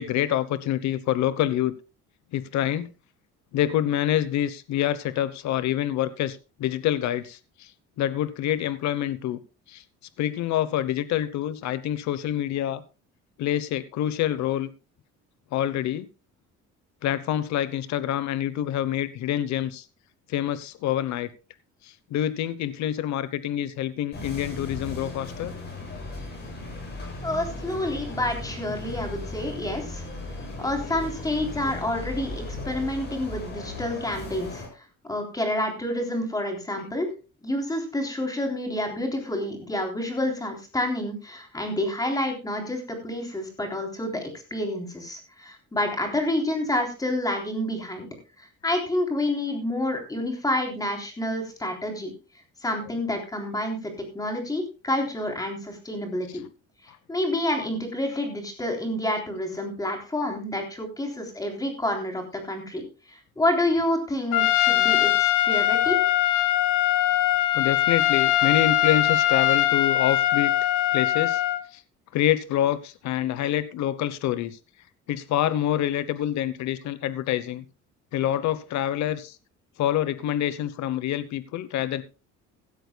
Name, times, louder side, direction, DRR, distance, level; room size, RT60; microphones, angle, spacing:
voice 1, 0.0-1.7 2.3-2.9 3.5-7.7 8.0-9.4 9.7-9.8 10.2-12.8 13.4-14.7 15.5-16.1 17.0-19.8 20.3-21.3 21.8-25.5 30.5-30.6 67.5-70.5 70.9-71.4 71.7-71.8 72.1-74.6 75.1-77.6 78.1-79.4 79.8-82.0, left 12 dB, 70° left, 1.0 m, -26 dB
sound 1, 24.1-34.7, left 2 dB, 35° left, 7.2 m, -36 dB
voice 2, 27.2-30.0 30.6-34.6 35.0-37.1 37.4-48.1 48.4-52.1 52.6-56.4 57.1-66.0, left 1 dB, 10° left, 3.5 m, -28 dB
Trumpet, 64.3-71.6, left 13 dB, 85° left, 1.3 m, -21 dB
16.5 x 13.0 x 2.3 m
cardioid pair, 150°, 30 cm